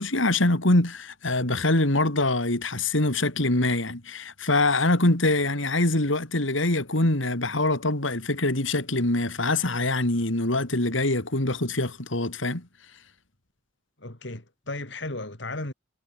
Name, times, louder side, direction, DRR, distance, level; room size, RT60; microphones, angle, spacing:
voice 1, 0.0-12.7, left 2 dB, 75° left, 3.5 m, -24 dB
voice 2, 14.0-15.7, left 2 dB, 60° left, 3.3 m, -35 dB
head